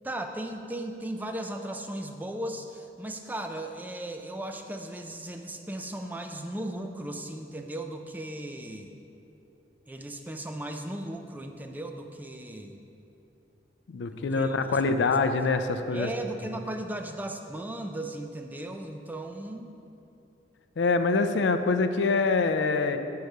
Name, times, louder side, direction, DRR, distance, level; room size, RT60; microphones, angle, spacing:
voice 1, 0.0-8.9 9.9-12.8 14.1-14.6 15.0-15.1 15.9-19.7, right 1 dB, 10° right, 5 dB, 0.3 m, -36 dB
voice 2, 13.9-16.1 20.8-23.0, left 4 dB, 75° left, 9 dB, 0.4 m, -25 dB
6.7 x 4.7 x 6.5 m, 2.8 s
head